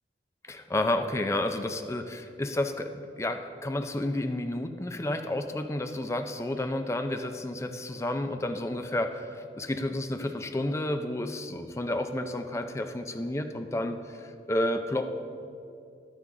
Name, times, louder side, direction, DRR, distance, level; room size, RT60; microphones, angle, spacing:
voice 1, 0.5-15.1, left 1 dB, 15° left, 7 dB, 0.4 m, -31 dB
11.0 x 9.7 x 3.7 m, 2.5 s
head